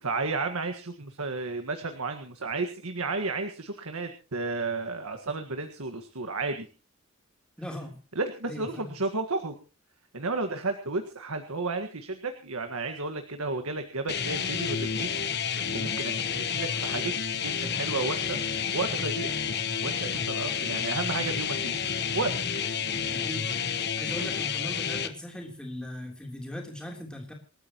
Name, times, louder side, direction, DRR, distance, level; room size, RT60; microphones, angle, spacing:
voice 1, 0.0-6.7 8.2-9.6 10.1-19.4 19.8-21.7 22.1-22.3 24.2-24.3, right 3 dB, 90° right, 6 dB, 1.7 m, -33 dB
voice 2, 7.6-8.0 8.4-8.9 22.8-23.5 24.0-27.3, left 1 dB, 5° left, 1 dB, 3.4 m, -39 dB
sound 1, 14.1-25.1, left 7 dB, 50° left, 1.3 m, -30 dB
27.5 x 13.0 x 3.0 m, 0.34 s
head